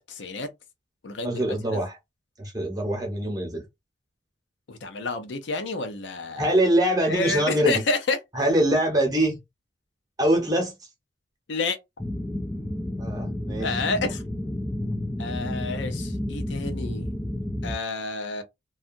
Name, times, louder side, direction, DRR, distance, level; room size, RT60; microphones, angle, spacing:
voice 1, 0.1-0.5 1.0-1.4 1.7-1.8 4.7-6.4 7.1-8.2 11.5-11.8 13.6-14.2 15.2-17.1 17.6-18.4, left 3 dB, 70° left, 0.6 m, -29 dB
voice 2, 1.2-2.0 2.4-3.6 6.4-7.8 8.3-9.4 10.2-10.7 13.0-13.7, right 1 dB, 20° right, 0.9 m, -23 dB
sound 1, 12.0-17.8, left 1 dB, 10° left, 0.3 m, -31 dB
2.7 x 2.3 x 2.5 m
head